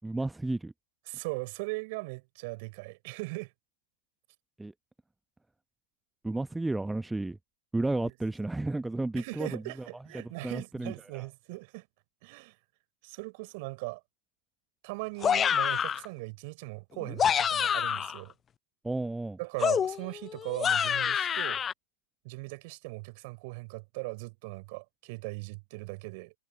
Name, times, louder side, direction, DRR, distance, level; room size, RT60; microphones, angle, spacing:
voice 1, 0.0-0.7 4.6-4.7 6.2-7.4 7.7-9.9 10.1-11.3 18.8-19.4, right 2 dB, 5° right, 0.9 m, -32 dB
voice 2, 1.1-3.5 8.0-8.1 9.1-11.9 12.2-12.5 13.0-14.0 14.8-18.3 19.4-21.6 22.2-26.3, right 27 dB, 45° right, 4.6 m, -39 dB
sound 1, 15.2-16.1 17.0-18.2 19.6-21.7, left 8 dB, 20° left, 0.3 m, -27 dB
figure-of-eight pair, 105°, 0 cm